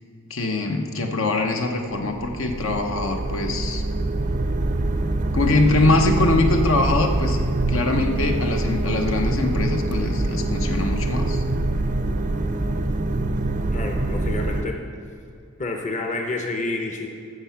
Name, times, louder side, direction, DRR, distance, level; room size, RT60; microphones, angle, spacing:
voice 1, 0.3-3.8 5.3-7.4 7.7-11.4, left 2 dB, 65° left, 3 dB, 1.0 m, -23 dB
sound 1, 1.8-14.6, right 2 dB, 35° right, 0.5 m, -24 dB
voice 2, 13.7-14.8 15.6-17.1, left 2 dB, 35° left, 2 dB, 0.9 m, -29 dB
15.5 x 5.8 x 5.8 m, 2.5 s
head